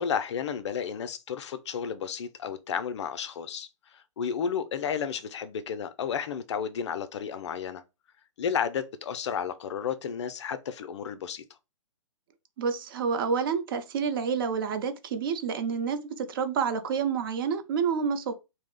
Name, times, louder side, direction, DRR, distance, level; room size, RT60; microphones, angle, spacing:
voice 1, 0.0-7.8 8.4-11.4, left 7 dB, 55° left, 0.4 m, -32 dB
voice 2, 12.6-18.3, right 6 dB, 40° right, 0.4 m, -28 dB
2.3 x 2.0 x 3.7 m
hypercardioid pair, 135°, 17 cm